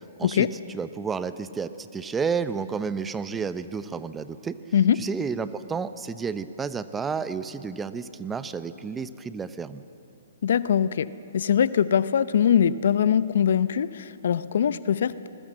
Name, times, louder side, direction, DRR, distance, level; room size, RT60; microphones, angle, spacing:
voice 1, 0.2-0.5 4.7-5.1 10.4-11.1 11.3-15.3, left 8 dB, 65° left, 16 dB, 0.7 m, -22 dB
voice 2, 0.7-4.6 4.9-9.8, right 5 dB, 10° right, 13 dB, 0.7 m, -31 dB
28.0 x 21.0 x 7.6 m, 2.8 s
hypercardioid pair, 130°, 0 cm